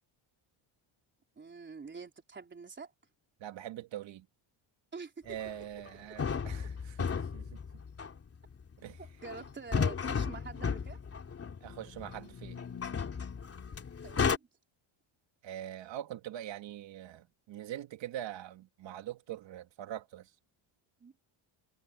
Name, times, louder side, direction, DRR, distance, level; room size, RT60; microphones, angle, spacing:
voice 1, 1.4-2.9 4.9-5.2 9.0-11.0 14.0-14.5 21.0-21.1, right 5 dB, 20° right, 4.1 m, -46 dB
voice 2, 3.4-4.3 5.2-7.6 8.8-9.0 11.6-12.6 15.4-20.3, right 12 dB, 60° right, 2.4 m, -43 dB
sound 1, 5.4-5.5 5.9-6.0 6.2-14.4, left 6 dB, 30° left, 3.1 m, -34 dB
cardioid pair, 145°, 49 cm